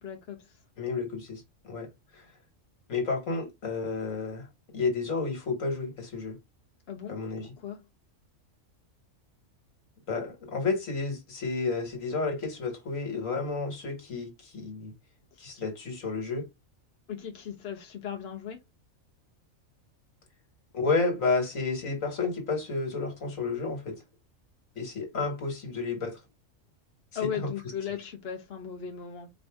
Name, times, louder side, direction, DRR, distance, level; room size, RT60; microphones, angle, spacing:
voice 1, 0.0-0.6 6.9-7.2 7.4-7.8 15.3-15.5 17.1-18.6 25.1-25.2 27.1-29.3, left 8 dB, 55° left, 1.1 m, -37 dB
voice 2, 0.8-2.3 2.9-4.5 4.7-6.4 7.1-7.5 10.1-14.9 15.4-16.5 20.7-24.0 24.8-26.2 27.2-27.5, left 4 dB, 75° left, 1.9 m, -31 dB
4.7 x 2.6 x 3.4 m
omnidirectional pair, 1.4 m